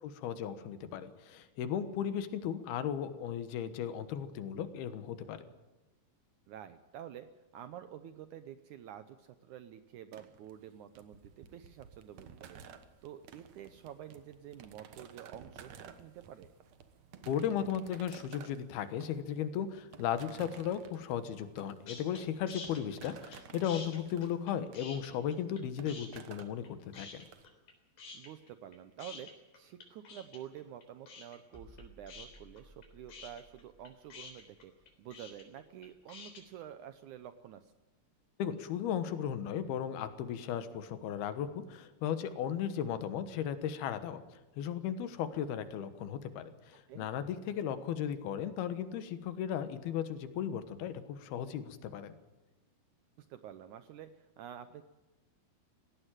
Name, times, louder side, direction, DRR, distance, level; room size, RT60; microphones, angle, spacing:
voice 1, 0.0-5.4 17.3-27.2 38.4-44.2 44.6-52.1, left 9 dB, 85° left, 11 dB, 3.2 m, -36 dB
voice 2, 6.5-12.6 13.0-16.5 22.8-22.9 28.1-34.7 35.0-37.7 46.9-47.1 53.2-54.8, right 10 dB, 75° right, 11 dB, 1.8 m, -49 dB
sound 1, 10.1-27.5, right 8 dB, 60° right, 2.1 m, -54 dB
sound 2, 21.9-22.2 22.5-23.4 23.6-25.6 25.9-26.7 26.9-27.7 28.0-36.4, left 4 dB, 70° left, 5.3 m, -48 dB
sound 3, 31.5-37.2 37.5-37.7, equal, 5° right, 2.5 m, -60 dB
18.5 x 16.5 x 9.1 m, 1.1 s
omnidirectional pair, 4.3 m